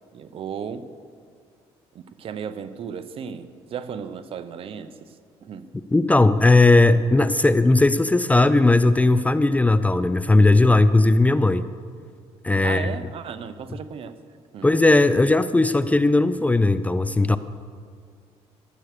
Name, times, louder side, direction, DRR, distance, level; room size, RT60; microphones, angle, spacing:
voice 1, 0.1-0.9 1.9-5.1 5.4-5.7 12.6-14.1 14.5-14.7, right 7 dB, 55° right, 12 dB, 0.8 m, -35 dB
voice 2, 5.9-11.6 12.4-12.9 14.6-17.4, left 2 dB, 15° left, 13 dB, 0.4 m, -17 dB
12.5 x 8.0 x 6.7 m, 2.1 s
cardioid pair, 100°, 11 cm